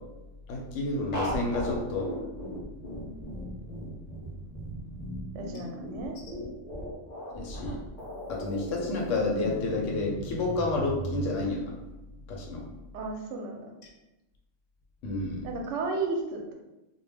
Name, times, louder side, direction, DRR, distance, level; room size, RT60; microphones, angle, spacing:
voice 1, 0.5-2.1 7.3-7.8 8.3-11.7 12.3-12.7 15.0-15.5, left 2 dB, 70° left, 0 dB, 0.9 m, -30 dB
sound 1, 1.1-11.3, equal, 50° left, 0.5 m, -37 dB
voice 2, 5.3-6.1 12.9-13.7 15.4-16.5, right 3 dB, 70° right, 1 dB, 0.8 m, -33 dB
2.2 x 2.1 x 3.3 m, 0.98 s
omnidirectional pair, 1.4 m